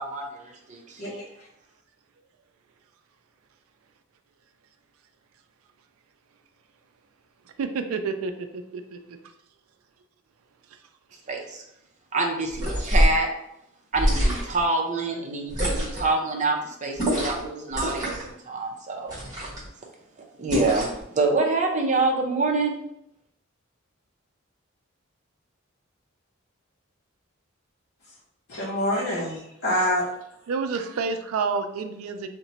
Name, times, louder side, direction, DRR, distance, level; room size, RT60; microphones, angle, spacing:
voice 1, 0.0-1.0 11.3-11.6 12.1-13.3 13.9-19.1 20.4-22.8, right 3 dB, 35° right, 0 dB, 0.6 m, -26 dB
voice 2, 1.0-1.5 28.5-30.1, equal, 50° left, -6 dB, 0.7 m, -26 dB
voice 3, 7.6-9.0 30.5-32.3, right 5 dB, 90° right, 7 dB, 0.4 m, -29 dB
sound 1, 12.5-13.2 13.9-14.6 15.5-16.1 17.0-17.5 17.7-18.3 19.1-19.7 20.5-21.0, equal, 20° right, 1.2 m, -25 dB
2.8 x 2.1 x 3.9 m, 0.79 s
head